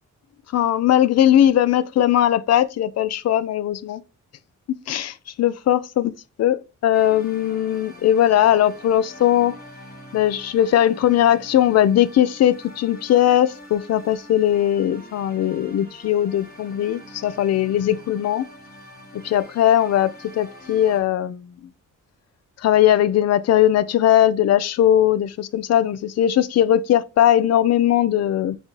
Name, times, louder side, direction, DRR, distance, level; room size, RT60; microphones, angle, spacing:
voice 1, 0.5-4.0 4.9-6.1 6.4-9.5 10.1-18.5 19.2-21.5 22.6-28.6, left 11 dB, 55° left, 0.4 m, -19 dB
sound 1, 6.9-21.0, left 1 dB, 30° left, 1.4 m, -44 dB
4.0 x 3.8 x 2.9 m
cardioid pair, 115°, 31 cm